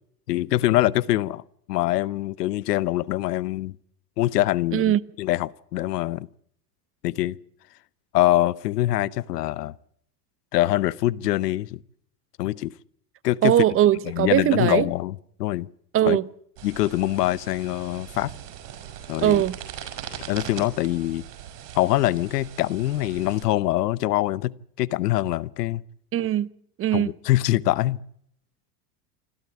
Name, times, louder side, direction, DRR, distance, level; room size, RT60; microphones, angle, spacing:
voice 1, 0.3-1.4 1.7-3.7 4.2-6.3 7.0-7.4 8.1-9.7 10.5-11.8 12.4-12.7 13.2-13.5 14.1-15.7 16.1-16.2 16.6-18.3 19.1-19.4 20.3-21.2 21.7-25.8 26.9-28.0, left 15 dB, 85° left, 0.9 m, -24 dB
voice 2, 13.4-14.9 15.9-16.3 19.2-19.6 26.1-26.5 26.8-27.1, right 12 dB, 30° right, 0.7 m, -20 dB
sound 1, 16.6-23.4, right 10 dB, 75° right, 5.5 m, -40 dB
27.0 x 13.0 x 8.1 m
supercardioid pair, 110°, 47 cm